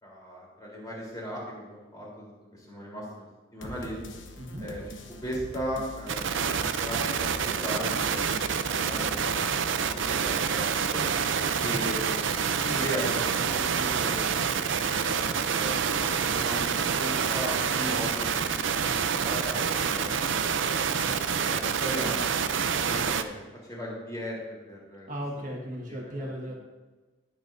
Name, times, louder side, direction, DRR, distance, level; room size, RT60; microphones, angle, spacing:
voice 1, 0.0-3.3 3.5-4.0 4.6-4.8 5.2-7.3 7.5-8.3 8.7-11.0 11.6-14.2 14.7-15.7 16.0-18.8 19.2-19.6 19.9-21.0 21.3-22.3 22.8-25.1 25.9-26.5, equal, 20° left, -5 dB, 3.6 m, -37 dB
sound 1, 3.6-10.4, left 1 dB, 70° left, 1.1 m, -44 dB
sound 2, 6.1-23.2, right 6 dB, 70° right, 0.6 m, -27 dB
voice 2, 11.6-11.9 25.1-26.5, equal, 40° right, -2 dB, 1.6 m, -36 dB
19.5 x 7.1 x 2.7 m, 1.2 s
head